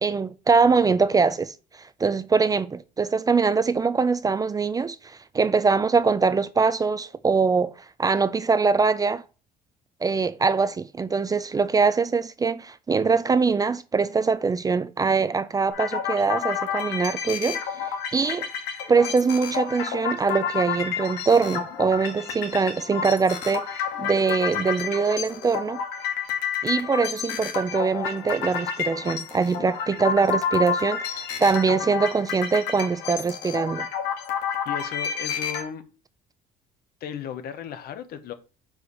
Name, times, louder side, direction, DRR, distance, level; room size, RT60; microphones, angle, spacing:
voice 1, 0.0-9.2 10.0-17.6 18.1-18.5 18.9-25.8 26.6-33.9, right 4 dB, 20° right, 0.3 m, -23 dB
sound 1, 15.7-35.6, left 7 dB, 90° left, 1.5 m, -30 dB
voice 2, 34.6-35.8 37.0-38.3, left 8 dB, 65° left, 0.9 m, -35 dB
4.7 x 4.7 x 5.3 m
cardioid pair, 110°, 17 cm